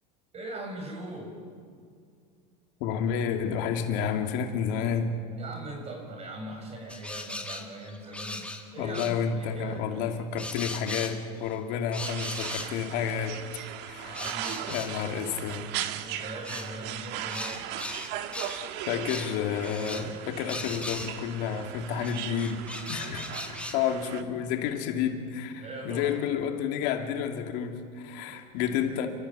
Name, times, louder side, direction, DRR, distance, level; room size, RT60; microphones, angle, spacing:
voice 1, 0.3-1.4 5.4-10.4 13.2-13.4 14.0-15.1 15.9-17.7 25.6-26.1 28.3-28.5, right 1 dB, 30° right, 3 dB, 6.9 m, -41 dB
voice 2, 2.8-5.1 8.8-13.4 13.8-14.2 14.7-15.7 18.9-23.3 23.7-29.1, left 7 dB, 60° left, 4 dB, 2.6 m, -30 dB
sound 1, 6.9-8.6 8.9-9.2 10.4-11.5 11.9-12.7 13.7-14.9 16.4-16.7 17.3-18.6 19.0-19.4 19.6-20.1 20.5-21.3 22.0-23.7, left 2 dB, 5° left, 2.2 m, -38 dB
sound 2, 12.0-24.2, right 11 dB, 60° right, 1.6 m, -38 dB
30.0 x 14.5 x 8.6 m, 2.1 s
supercardioid pair, 120°, 20 cm